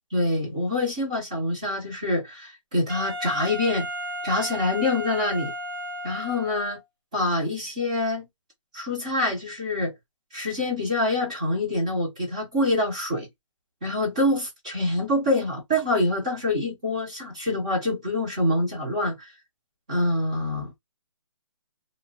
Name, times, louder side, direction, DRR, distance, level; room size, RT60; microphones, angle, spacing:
voice 1, 0.1-3.9 4.2-5.5 6.0-6.8 7.1-8.3 8.7-9.9 10.3-13.3 13.8-19.3 19.9-20.8, left 1 dB, 15° right, 0.6 m, -25 dB
Wind instrument woodwind instrument, 2.9-6.8, equal, 45° right, 0.8 m, -34 dB
2.6 x 2.1 x 2.8 m
hypercardioid pair, 175°, 16 cm